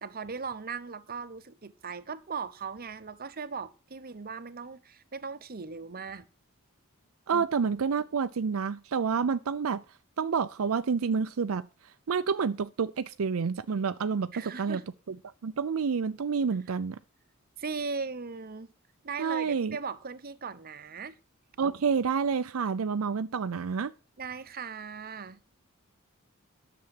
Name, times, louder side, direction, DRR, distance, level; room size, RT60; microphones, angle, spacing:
voice 1, 0.0-6.3 7.3-7.5 14.3-14.8 17.6-18.7 19.0-21.2 24.2-25.4, right 5 dB, 45° right, 0.9 m, -38 dB
voice 2, 7.3-9.8 10.2-11.7 12.1-14.8 15.4-17.0 19.2-19.8 21.6-23.9, right 5 dB, 75° right, 0.5 m, -28 dB
10.5 x 7.0 x 7.7 m
head